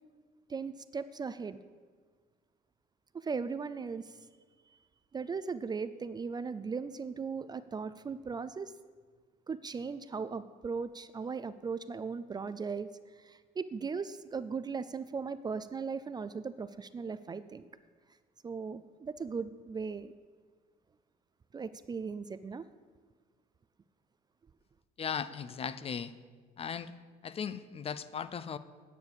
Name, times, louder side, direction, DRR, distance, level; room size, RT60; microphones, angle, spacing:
voice 1, 0.5-1.6 3.1-4.1 5.1-8.7 9.5-12.9 13.2-17.7 18.4-20.1 21.5-22.6, right 5 dB, 25° right, 13 dB, 0.4 m, -38 dB
voice 2, 25.0-26.1 26.6-26.9 27.2-28.6, left 7 dB, 35° left, 14 dB, 0.5 m, -37 dB
9.6 x 6.8 x 8.1 m, 1.5 s
cardioid pair, 110°, 17 cm